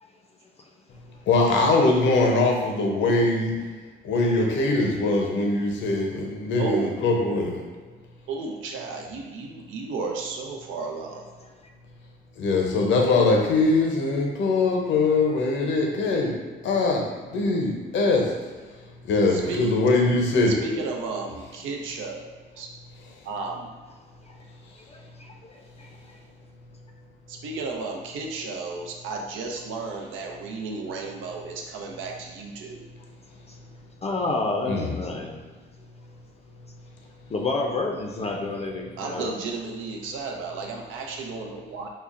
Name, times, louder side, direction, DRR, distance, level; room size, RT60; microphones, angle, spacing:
voice 1, 1.3-3.5 4.0-7.7 12.4-16.3 16.6-18.3 19.0-20.5 34.7-34.9, left 3 dB, 70° left, 0 dB, 0.6 m, -22 dB
voice 2, 6.6-7.0 8.3-11.2 19.3-19.7 20.5-22.3 22.6-22.7 23.2-23.7 27.3-32.9 39.0-41.9, right 4 dB, 90° right, 1 dB, 0.6 m, -33 dB
voice 3, 24.8-25.9 28.4-28.6 33.5-33.6 34.0-35.3 37.3-39.3, left 3 dB, 30° left, 1 dB, 0.4 m, -30 dB
5.5 x 2.0 x 2.4 m, 1.4 s
cardioid pair, 90°, 20 cm